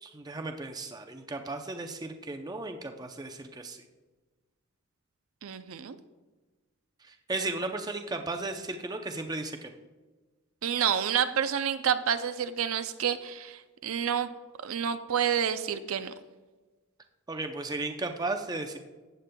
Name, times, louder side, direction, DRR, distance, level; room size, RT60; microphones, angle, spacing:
voice 1, 0.0-3.8 7.0-9.7 17.3-18.8, right 2 dB, 20° right, 5 dB, 0.5 m, -35 dB
voice 2, 5.4-6.0 10.6-14.3 14.6-16.1, right 8 dB, 75° right, 10 dB, 0.5 m, -29 dB
14.5 x 9.0 x 2.2 m, 1.3 s
head